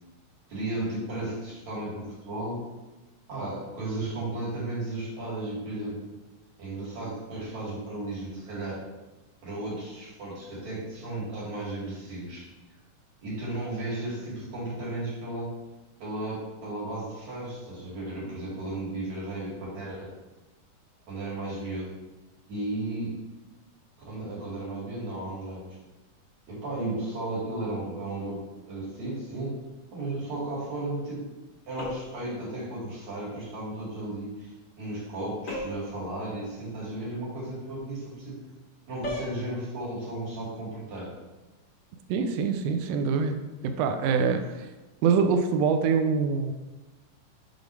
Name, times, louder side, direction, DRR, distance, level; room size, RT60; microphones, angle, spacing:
voice 1, 0.5-2.6 3.3-6.0 6.6-8.8 9.4-12.5 13.2-15.5 16.0-20.1 21.1-21.9 22.5-23.2 24.1-25.8 26.5-29.6 29.9-31.3 31.7-38.4 38.9-41.1, right 2 dB, 65° right, -7 dB, 3.6 m, -34 dB
sound 1, 31.8-32.3 35.5-35.9 39.0-39.4, equal, 60° left, 0.8 m, -35 dB
voice 2, 42.1-43.4 43.6-44.7 45.0-46.5, right 5 dB, 80° right, 6 dB, 1.5 m, -24 dB
6.8 x 4.1 x 4.8 m, 1.1 s
omnidirectional pair, 3.5 m